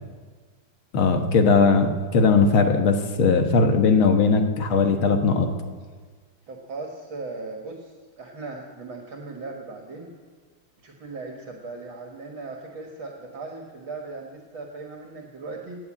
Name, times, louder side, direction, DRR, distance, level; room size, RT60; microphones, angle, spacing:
voice 1, 0.9-5.5, left 4 dB, 70° left, 5 dB, 2.1 m, -19 dB
voice 2, 6.5-10.1 10.8-15.8, right 3 dB, 65° right, 1 dB, 2.3 m, -38 dB
17.5 x 10.5 x 7.5 m, 1.5 s
omnidirectional pair, 2.4 m